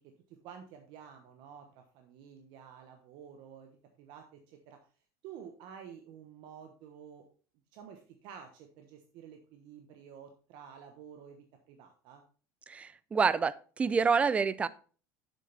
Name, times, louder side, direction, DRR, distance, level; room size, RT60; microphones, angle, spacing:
voice 1, 0.0-4.8 5.2-7.2 7.7-12.2, right 8 dB, 55° right, 1.1 m, -51 dB
voice 2, 12.7-14.7, right 5 dB, 15° right, 0.3 m, -28 dB
7.5 x 6.9 x 4.0 m
cardioid pair, 160°, 9 cm